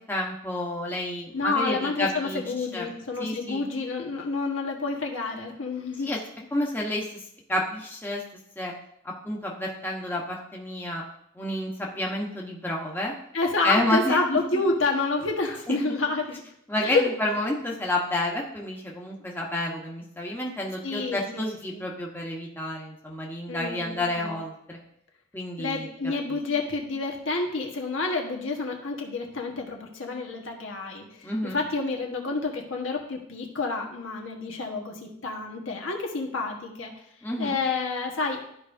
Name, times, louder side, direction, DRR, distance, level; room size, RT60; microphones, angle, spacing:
voice 1, 0.1-2.4 2.7-2.9 3.2-3.7 6.0-6.2 6.5-7.0 7.5-8.2 8.6-8.7 9.2-11.0 11.3-13.1 13.6-14.2 16.7-24.8 25.3-25.9 26.2-26.4 31.2-31.6 37.2-37.6, left 1 dB, 10° left, -2 dB, 1.0 m, -30 dB
voice 2, 1.3-6.1 13.3-16.4 16.8-17.1 20.8-21.8 23.5-24.4 25.6-36.9 37.4-38.4, left 3 dB, 85° left, 1 dB, 1.4 m, -29 dB
13.0 x 4.9 x 2.6 m, 0.73 s
head